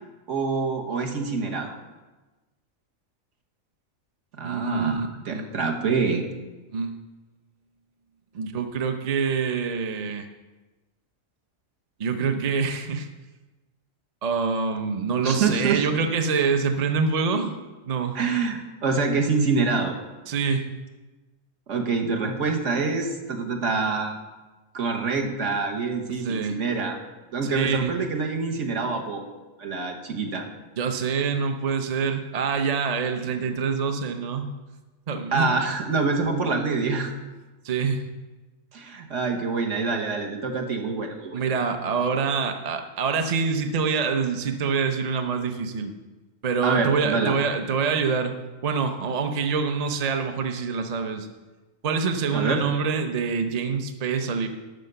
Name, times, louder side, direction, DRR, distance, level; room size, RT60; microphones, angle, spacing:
voice 1, 0.3-1.7 4.4-6.2 15.2-15.9 18.1-19.9 21.7-24.2 24.7-27.0 27.3-29.2 29.6-30.5 35.3-37.1 38.7-41.4 46.6-47.4 52.3-52.6, right 4 dB, 60° right, 2 dB, 1.4 m, -26 dB
voice 2, 4.4-5.5 6.7-7.0 8.3-10.2 12.0-13.1 14.2-17.5 17.8-18.2 20.3-20.7 26.2-26.6 27.4-27.9 30.8-34.5 35.1-35.5 37.6-38.1 41.3-45.9 46.4-48.3 48.6-51.3 51.8-54.5, right 5 dB, 40° right, 6 dB, 0.6 m, -25 dB
11.5 x 4.9 x 6.7 m, 1.2 s
omnidirectional pair, 1.4 m